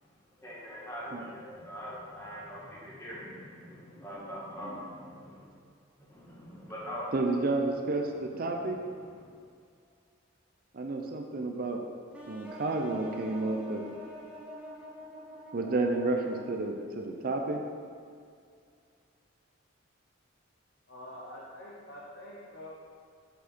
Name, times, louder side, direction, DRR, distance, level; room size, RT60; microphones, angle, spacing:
voice 1, 0.4-5.5 6.1-7.1, equal, 15° left, -7 dB, 1.6 m, -42 dB
voice 2, 7.1-8.8 10.7-11.9 12.3-14.0 15.5-17.6, right 2 dB, 50° right, 3 dB, 0.5 m, -31 dB
sound 1, 12.1-17.0, equal, 5° right, 0.8 m, -47 dB
voice 3, 20.9-22.7, left 1 dB, 65° left, -6 dB, 0.9 m, -46 dB
6.8 x 4.7 x 4.4 m, 2.2 s
head